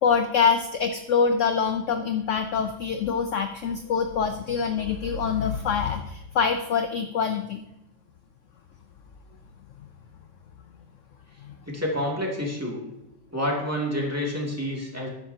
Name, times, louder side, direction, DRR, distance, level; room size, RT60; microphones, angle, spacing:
voice 1, 0.0-7.6 11.4-11.5, left 6 dB, 60° left, 7 dB, 0.8 m, -25 dB
voice 2, 11.7-12.8 13.3-15.1, equal, 10° right, -3 dB, 2.3 m, -28 dB
13.5 x 10.0 x 2.8 m, 0.90 s
omnidirectional pair, 1.8 m